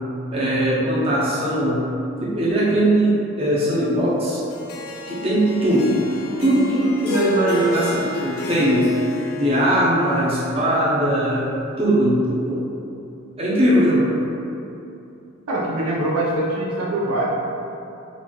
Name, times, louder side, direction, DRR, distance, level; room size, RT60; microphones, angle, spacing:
voice 1, 0.3-1.8 2.2-4.4 5.1-6.0 6.4-8.9 9.4-11.5 11.8-12.7 13.4-14.1, right 1 dB, 25° right, -8 dB, 0.6 m, -20 dB
Harp, 4.5-10.9, left 2 dB, 80° left, 0.5 m, -30 dB
sound 1, 6.2-8.8, right 1 dB, 60° right, 0.9 m, -39 dB
voice 2, 15.5-17.3, right 1 dB, 90° right, -4 dB, 0.7 m, -23 dB
4.0 x 2.5 x 3.0 m, 2.7 s
head